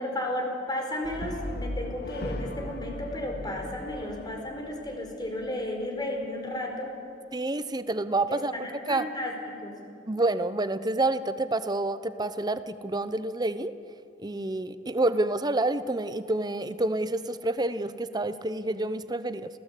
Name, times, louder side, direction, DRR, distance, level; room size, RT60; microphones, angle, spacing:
voice 1, 0.0-7.0 8.3-9.7, left 1 dB, 25° left, 2 dB, 4.5 m, -33 dB
Brass instrument, 1.0-5.3, left 1 dB, 60° left, 2.3 m, -37 dB
voice 2, 7.3-8.5 8.9-9.1 10.1-13.7 14.2-19.5, right 2 dB, 20° right, 12 dB, 0.9 m, -28 dB
28.5 x 17.5 x 8.5 m, 2.8 s
head